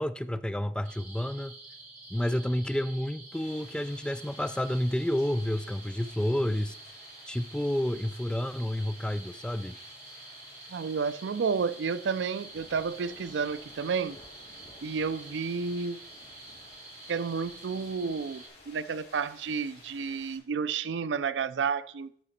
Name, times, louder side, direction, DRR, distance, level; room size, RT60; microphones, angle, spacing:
voice 1, 0.0-1.5 2.1-6.8 7.3-9.8, left 1 dB, 5° left, 0.3 m, -30 dB
sound 1, 0.8-18.5, right 3 dB, 15° right, 3.4 m, -49 dB
sound 2, 3.3-20.4, left 2 dB, 40° left, 4.0 m, -54 dB
voice 2, 10.7-14.2 14.8-16.0 17.1-22.1, right 5 dB, 90° right, 0.4 m, -31 dB
12.0 x 4.9 x 4.2 m
head